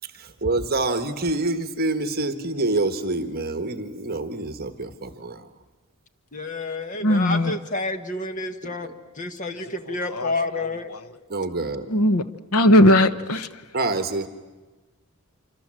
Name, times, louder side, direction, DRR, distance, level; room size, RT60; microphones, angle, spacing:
voice 1, 0.1-5.5 11.3-11.9 13.7-14.3, right 2 dB, 45° right, 1.3 m, -26 dB
voice 2, 6.3-10.9, left 3 dB, 35° left, 1.3 m, -29 dB
voice 3, 7.0-7.5 10.2-10.3 11.9-12.2 12.5-13.5, left 1 dB, 80° left, 1.2 m, -17 dB
26.5 x 26.0 x 7.6 m
head